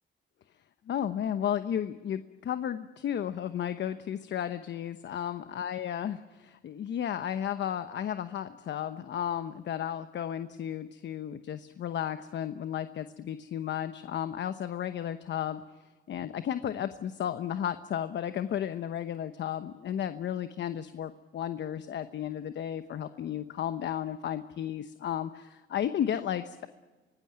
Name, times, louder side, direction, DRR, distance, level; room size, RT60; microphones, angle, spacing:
voice 1, 0.9-15.6 16.1-26.7, left 10 dB, 65° left, 10 dB, 1.0 m, -33 dB
24.5 x 18.5 x 8.9 m, 1.3 s
cardioid pair, 90°, 20 cm